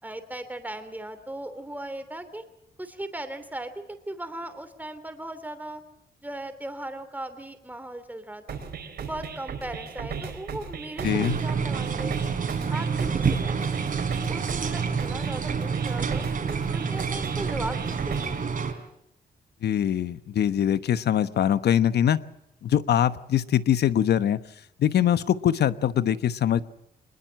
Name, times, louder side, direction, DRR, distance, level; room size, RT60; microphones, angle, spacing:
voice 1, 0.0-2.4 2.8-5.8 6.2-8.6 9.0-12.4 12.7-18.3, right 1 dB, 10° right, 9 dB, 3.1 m, -38 dB
sound 1, 8.5-18.5, right 6 dB, 70° right, 4.4 m, -37 dB
voice 2, 11.0-11.4 19.6-22.2 22.6-24.4 24.8-26.6, left 10 dB, 75° left, 14 dB, 1.1 m, -23 dB
sound 2, 11.0-18.7, right 5 dB, 55° right, 3.7 m, -28 dB
24.5 x 21.0 x 7.6 m, 0.81 s
cardioid pair, 115°, 17 cm